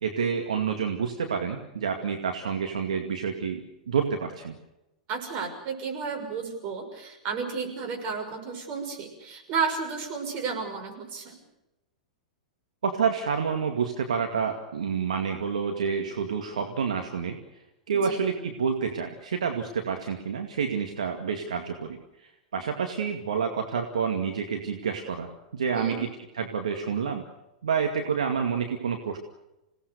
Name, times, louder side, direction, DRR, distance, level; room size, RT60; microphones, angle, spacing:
voice 1, 0.0-4.5 12.8-17.4 17.9-25.9 26.3-27.2 27.6-29.2, right 6 dB, 70° right, 4 dB, 2.3 m, -28 dB
voice 2, 5.1-11.4 17.9-18.2 25.7-26.0, right 5 dB, 40° right, 4 dB, 6.3 m, -32 dB
27.0 x 18.5 x 6.7 m, 0.95 s
figure-of-eight pair, 100°, 4 cm